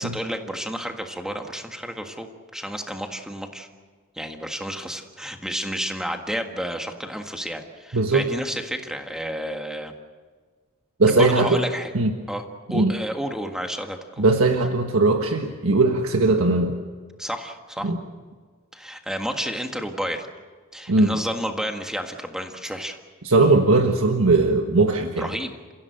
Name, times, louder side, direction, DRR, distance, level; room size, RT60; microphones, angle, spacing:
voice 1, 0.0-3.7 4.2-9.9 11.1-11.9 12.3-12.4 12.7-14.2 17.2-17.9 18.7-20.3 20.7-23.0 25.2-25.5, equal, 5° right, 4 dB, 1.7 m, -31 dB
voice 2, 7.9-8.3 11.0-11.6 11.9-12.1 12.7-12.9 14.2-16.7 17.8-18.0 20.9-21.2 23.2-25.3, right 3 dB, 75° right, 4 dB, 1.4 m, -19 dB
29.0 x 16.0 x 7.9 m, 1.6 s
head